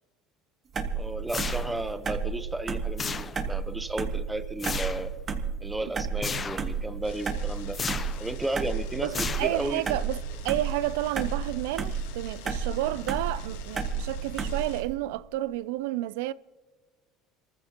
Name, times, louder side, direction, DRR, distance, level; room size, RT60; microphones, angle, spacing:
sound 1, 0.7-14.9, right 6 dB, 35° right, 1.5 m, -32 dB
voice 1, 1.0-5.1 5.6-7.8 8.2-9.8, right 1 dB, 10° right, 0.8 m, -33 dB
sound 2, 1.3-2.0 3.0-3.6 4.6-5.1 6.2-6.7 7.7-8.3 9.1-9.8, left 5 dB, 30° left, 0.7 m, -34 dB
sound 3, 7.0-14.8, left 7 dB, 90° left, 1.3 m, -45 dB
voice 2, 9.0-10.2 10.4-16.3, right 16 dB, 85° right, 0.4 m, -31 dB
26.5 x 14.5 x 2.9 m
supercardioid pair, 90°, 0 cm